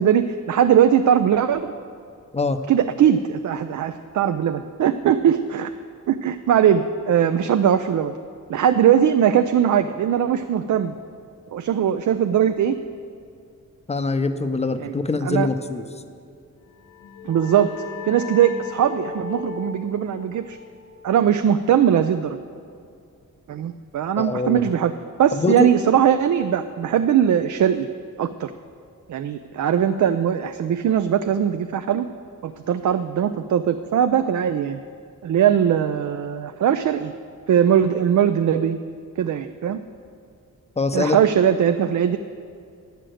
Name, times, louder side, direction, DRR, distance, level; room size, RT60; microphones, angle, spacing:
voice 1, 0.0-1.7 2.7-5.7 6.1-8.1 8.5-11.0 11.5-12.8 14.8-14.9 15.2-15.5 17.2-20.6 21.0-22.4 23.5-24.9 25.2-27.9 28.2-28.5 29.1-32.1 32.4-34.8 35.2-37.1 37.5-38.8 39.2-39.8 40.9-42.2, right 9 dB, 60° right, 9 dB, 0.5 m, -20 dB
voice 2, 13.9-15.8 24.2-24.7 25.3-25.7 40.8-41.2, left 3 dB, 20° left, 9 dB, 0.6 m, -23 dB
sound 1, 16.7-22.1, left 7 dB, 70° left, 0.8 m, -37 dB
9.8 x 6.7 x 7.7 m, 2.4 s
cardioid pair, 90°, 33 cm